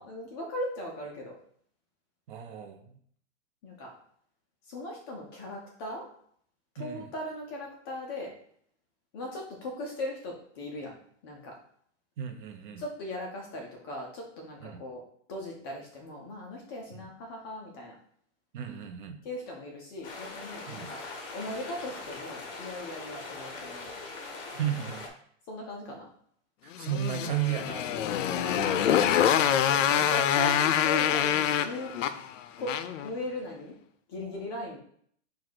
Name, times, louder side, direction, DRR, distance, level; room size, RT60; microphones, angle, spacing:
voice 1, 0.0-1.4 3.6-3.9 4.7-6.1 6.8-8.3 9.1-11.0 11.2-11.5 12.8-15.0 15.3-17.9 19.2-21.0 21.3-23.9 25.5-26.1 28.3-31.9 32.6-33.7 34.1-34.8, left 1 dB, 20° left, 0 dB, 0.4 m, -38 dB
voice 2, 2.3-3.0 6.8-7.1 12.2-12.8 14.6-14.8 16.9-17.1 18.5-19.2 20.7-20.9 24.5-25.1 26.6-28.0 29.5-29.6, right 10 dB, 45° right, 6 dB, 0.6 m, -34 dB
sound 1, 20.0-25.1, left 3 dB, 50° left, 1.0 m, -41 dB
Motorcycle, 26.7-33.1, left 9 dB, 85° left, 0.5 m, -25 dB
4.6 x 2.3 x 4.0 m, 0.62 s
hypercardioid pair, 150°, 37 cm